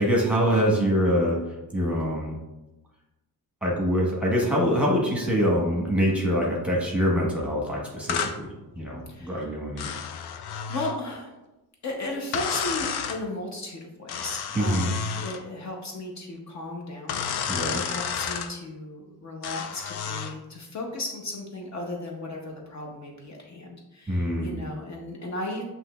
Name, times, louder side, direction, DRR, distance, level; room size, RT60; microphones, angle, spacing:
voice 1, 0.0-1.4 1.7-2.4 3.6-8.5 8.7-9.9 14.5-14.9 17.5-17.8 24.1-24.6, equal, 5° right, -4 dB, 1.0 m, -24 dB
sound 1, 8.1-8.4 9.8-11.0 12.3-13.2 14.1-15.4 17.1-18.5 19.4-20.4, left 7 dB, 85° left, 0.5 m, -31 dB
voice 2, 9.1-9.5 10.7-11.3 11.8-17.2 17.7-25.6, left 2 dB, 45° left, 0 dB, 0.7 m, -35 dB
8.0 x 2.8 x 2.2 m, 1.0 s
wide cardioid pair, 160°, 38 cm